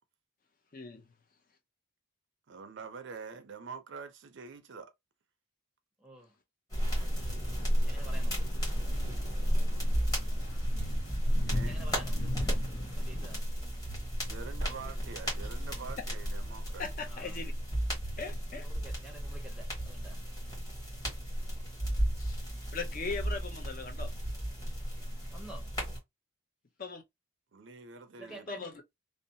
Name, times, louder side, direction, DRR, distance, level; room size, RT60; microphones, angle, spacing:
voice 1, 0.7-1.1 16.8-17.5 18.2-18.7 22.2-22.4 22.7-24.1 26.8-27.0 28.5-28.8, left 4 dB, 40° left, 0.5 m, -39 dB
voice 2, 2.5-4.9 11.4-11.8 14.2-16.9 27.5-28.7, right 5 dB, 60° right, 0.4 m, -45 dB
voice 3, 6.0-6.4 7.8-8.5 11.6-12.3 13.0-13.6 17.1-17.4 18.6-20.2 25.3-25.7 28.2-28.8, right 2 dB, 5° right, 0.6 m, -49 dB
sound 1, 6.7-26.0, equal, 20° left, 1.3 m, -33 dB
sound 2, 6.9-13.4, left 1 dB, 70° left, 0.8 m, -39 dB
2.7 x 2.0 x 2.6 m
head